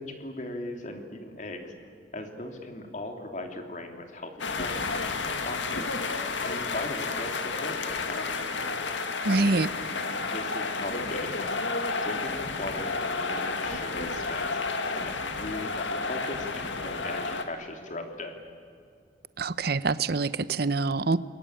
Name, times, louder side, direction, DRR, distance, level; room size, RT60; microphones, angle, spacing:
voice 1, 0.0-1.7 2.1-6.0 6.4-8.3 9.2-9.6 10.2-11.5 12.0-18.3, left 2 dB, 40° left, 4 dB, 3.0 m, -38 dB
sound 1, 4.4-17.4, left 3 dB, 85° left, 2.1 m, -31 dB
voice 2, 9.2-9.7 19.4-21.2, right 3 dB, 55° right, 16 dB, 0.8 m, -25 dB
28.5 x 23.0 x 8.9 m, 2.3 s
head